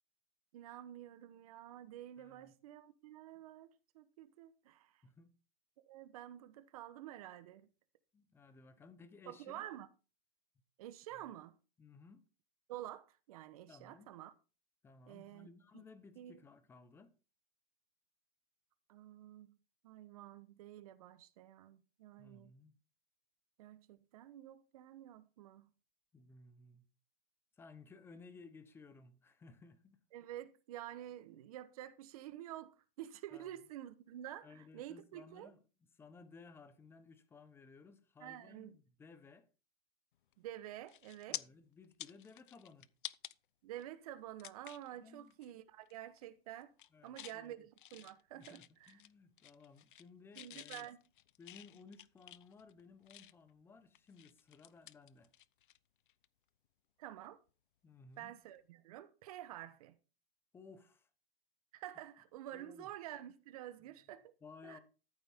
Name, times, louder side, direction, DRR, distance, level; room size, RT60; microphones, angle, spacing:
voice 1, 0.5-5.0 5.8-7.7 9.3-9.9 10.8-11.5 12.7-14.3 15.1-15.5 15.7-15.8 16.2-16.4 18.9-19.6 19.8-22.5 23.6-25.7 30.1-35.5 38.2-38.8 40.4-41.4 43.6-46.7 47.0-49.0 50.3-51.0 57.0-57.4 58.2-60.0 61.7-64.3 64.6-64.8, right 12 dB, 40° right, 1.0 m, -49 dB
voice 2, 2.2-2.5 5.0-5.3 8.1-9.7 11.1-11.2 11.8-12.2 13.7-14.1 14.8-17.1 22.2-22.7 26.1-26.8 27.6-30.0 33.3-33.5 34.4-35.6 36.0-39.5 41.3-42.9 44.9-45.3 46.9-47.6 48.3-50.9 51.4-55.3 57.8-58.3 60.5-61.1 62.5-62.9 64.4-64.8, left 4 dB, 10° left, 0.9 m, -58 dB
sound 1, 40.3-40.5 40.9-41.4 41.8-43.3 43.8-43.9 44.4-44.9 45.3-45.5 45.8-46.3 46.6-47.4 47.8-49.1 49.4-50.1 50.3-53.5 53.9-55.8 56.1-56.3 58.1-58.3, left 12 dB, 60° left, 0.7 m, -50 dB
14.0 x 7.9 x 3.6 m
hypercardioid pair, 150°, 29 cm